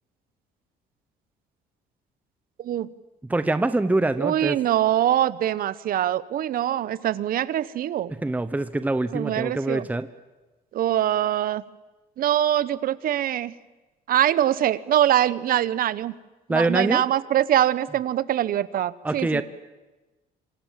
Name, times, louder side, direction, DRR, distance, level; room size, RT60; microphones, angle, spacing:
voice 1, 3.3-4.6 8.2-10.1 16.5-17.0 19.0-19.4, right 2 dB, 10° right, 12 dB, 1.0 m, -24 dB
voice 2, 4.2-8.1 9.1-9.9 10.7-11.6 12.2-13.5 14.1-16.1 16.5-19.4, right 11 dB, 60° right, 18 dB, 1.0 m, -23 dB
27.5 x 26.0 x 7.5 m, 1.1 s
cardioid pair, 110°, 17 cm